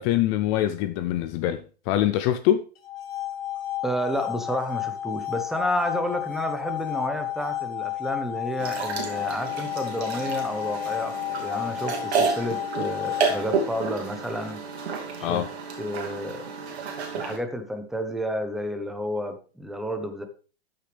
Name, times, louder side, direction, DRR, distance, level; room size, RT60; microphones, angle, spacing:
voice 1, 0.0-2.6 15.2-15.5, left 12 dB, 30° left, 0.5 m, -24 dB
sound 1, 2.8-13.7, left 13 dB, 65° left, 2.0 m, -32 dB
voice 2, 3.8-14.6 15.2-15.4 15.8-16.5 17.1-20.3, equal, ahead, 0.9 m, -31 dB
sound 2, 8.6-17.4, right 5 dB, 90° right, 2.6 m, -31 dB
13.0 x 6.6 x 3.3 m
hypercardioid pair, 145°, 31 cm